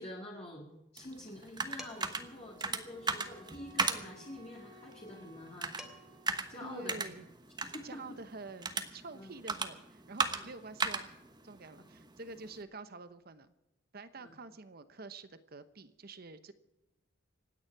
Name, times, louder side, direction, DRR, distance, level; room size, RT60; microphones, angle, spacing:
voice 1, 0.0-6.1 6.5-7.2 7.6-8.0 9.1-9.3 10.3-10.5 11.8-11.9 14.2-14.4, left 1 dB, 35° left, -3 dB, 2.3 m, -47 dB
sound 1, 1.0-12.6, right 4 dB, 25° right, 1.1 m, -38 dB
Dishes pots and pans, 1.8-2.2 3.8-4.3 5.4-5.5 5.8-6.2, equal, ahead, 1.9 m, -49 dB
Wind instrument woodwind instrument, 2.0-6.8, right 1 dB, 75° right, 2.4 m, -59 dB
voice 2, 6.6-7.3 7.8-11.1 11.4-13.5 13.9-16.5, right 3 dB, 55° right, 12 dB, 1.0 m, -48 dB
26.0 x 9.7 x 4.8 m, 0.96 s
head